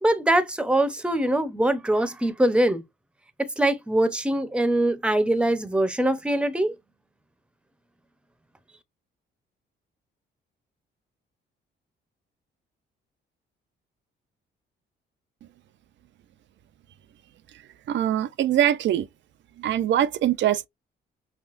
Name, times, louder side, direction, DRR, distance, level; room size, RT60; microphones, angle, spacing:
voice 1, 0.0-2.8 3.4-6.7, right 1 dB, 5° right, 0.8 m, -23 dB
voice 2, 17.9-19.1 19.6-20.7, right 11 dB, 65° right, 0.5 m, -23 dB
5.8 x 2.2 x 2.5 m
cardioid pair, 90°, 20 cm